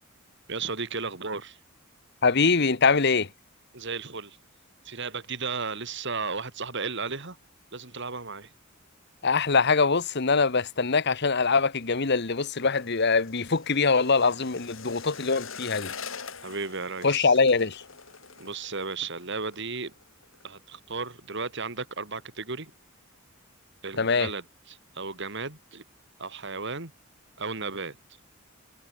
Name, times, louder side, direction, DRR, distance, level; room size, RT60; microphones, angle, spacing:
voice 1, 0.5-1.6 3.7-4.4 4.9-7.4 7.7-8.5 16.4-17.3 18.4-19.9 20.4-22.7 23.8-25.8 26.2-26.9 27.4-28.0, right 4 dB, 60° right, 3.5 m, -34 dB
voice 2, 2.2-3.3 9.2-15.9 17.0-17.8 24.0-24.3, left 4 dB, 55° left, 1.2 m, -23 dB
sound 1, 11.5-20.5 20.8-21.1 21.4-21.9 22.3-22.4, left 6 dB, 70° left, 6.0 m, -45 dB
head